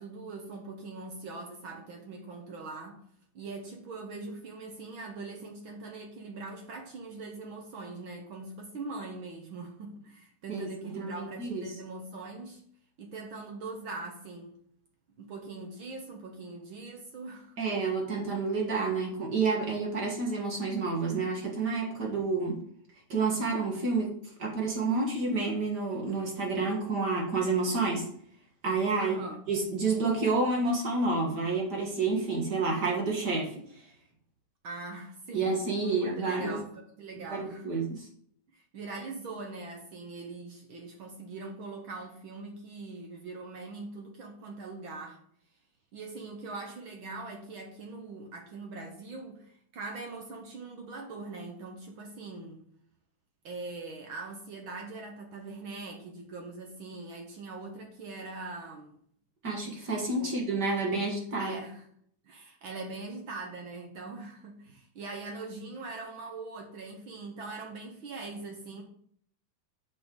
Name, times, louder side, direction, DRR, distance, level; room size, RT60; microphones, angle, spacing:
voice 1, 0.0-3.0 3.3-12.6 13.0-14.6 15.2-17.5 29.0-29.4 34.6-38.0 38.5-45.2 45.9-52.6 53.4-59.0 60.2-60.4 61.4-61.8 62.2-68.8, right 3 dB, 70° right, 2 dB, 1.1 m, -42 dB
voice 2, 11.0-11.6 17.6-22.6 23.1-24.1 24.4-28.1 28.6-29.2 29.5-33.6 35.3-36.6 37.2-38.0 59.4-61.6, right 3 dB, 40° right, -1 dB, 1.6 m, -29 dB
11.0 x 6.2 x 3.9 m, 0.65 s
omnidirectional pair, 3.8 m